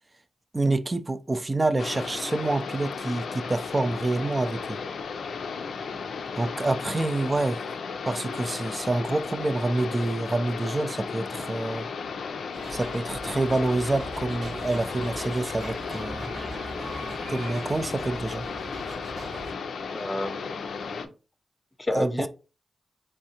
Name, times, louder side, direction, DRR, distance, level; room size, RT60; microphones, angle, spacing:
voice 1, 0.5-4.8 6.4-7.6 8.1-11.9 12.7-16.3 17.3-18.5 21.9-22.3, right 2 dB, 30° right, 0.3 m, -27 dB
sound 1, 1.8-21.1, left 5 dB, 90° left, 0.4 m, -35 dB
sound 2, 12.5-19.5, right 1 dB, 80° right, 1.4 m, -40 dB
voice 2, 19.9-21.1 21.8-22.3, left 1 dB, 25° left, 0.6 m, -31 dB
3.6 x 3.2 x 2.8 m
cardioid pair, 65°, 0 cm